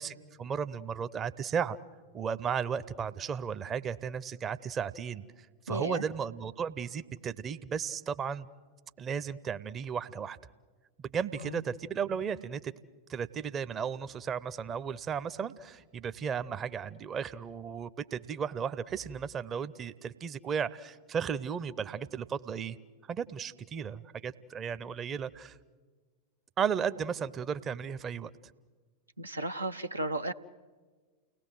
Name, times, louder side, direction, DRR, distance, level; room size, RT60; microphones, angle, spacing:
voice 1, 0.0-1.8 2.1-8.5 9.0-10.4 11.0-12.7 13.1-22.8 23.1-25.6 26.6-28.3, right 7 dB, 25° right, 14 dB, 0.7 m, -35 dB
voice 2, 5.7-6.0 11.4-11.6 29.2-30.3, right 2 dB, 85° right, 8 dB, 0.7 m, -34 dB
30.0 x 18.5 x 7.7 m, 1.5 s
figure-of-eight pair, 90°, 0 cm